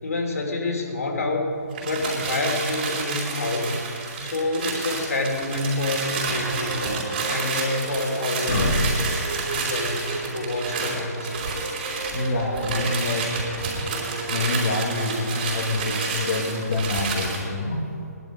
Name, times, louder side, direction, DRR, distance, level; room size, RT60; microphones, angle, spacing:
voice 1, 0.0-1.5 1.8-3.7 4.2-6.8 7.2-8.7 9.5-11.3, left 2 dB, 65° left, 1 dB, 3.2 m, -27 dB
sound 1, 1.7-17.5, right 4 dB, 35° right, 4.1 m, -30 dB
sound 2, 6.1-16.3, right 3 dB, 65° right, 2.9 m, -36 dB
voice 2, 8.5-8.9 12.1-13.4 14.3-17.8, left 2 dB, 40° left, -2 dB, 1.7 m, -26 dB
19.5 x 11.5 x 5.3 m, 2.7 s
hypercardioid pair, 170°, 9 cm